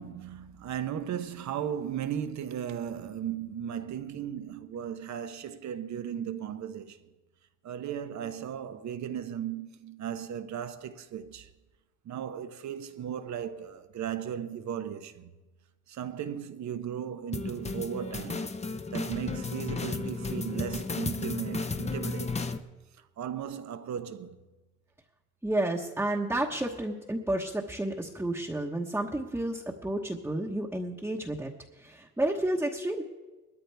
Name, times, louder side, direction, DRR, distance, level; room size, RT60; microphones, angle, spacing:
voice 1, 0.0-7.0 7.6-11.5 12.0-15.3 15.9-18.6 18.9-22.5 23.2-24.4, right 9 dB, 65° right, 1.0 m, -36 dB
sound 1, 17.3-22.6, left 3 dB, 20° left, 0.8 m, -34 dB
voice 2, 25.4-31.5 31.8-33.0, right 1 dB, 5° right, 1.2 m, -31 dB
19.5 x 13.5 x 3.5 m
cardioid pair, 90°, 30 cm